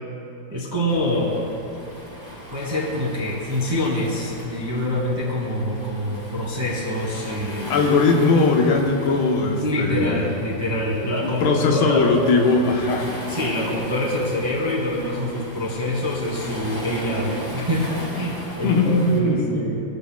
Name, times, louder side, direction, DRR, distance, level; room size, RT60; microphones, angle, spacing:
voice 1, 0.5-1.4 2.5-7.8 9.6-12.1 13.3-17.8 18.1-19.8, left 1 dB, 10° right, -6 dB, 1.5 m, -25 dB
Waves surf, 0.9-19.2, equal, 20° left, 1.4 m, -37 dB
voice 2, 7.7-10.3 11.2-13.1 18.6-19.5, left 3 dB, 80° left, 1 dB, 3.0 m, -19 dB
20.5 x 13.0 x 2.3 m, 2.8 s
omnidirectional pair, 4.7 m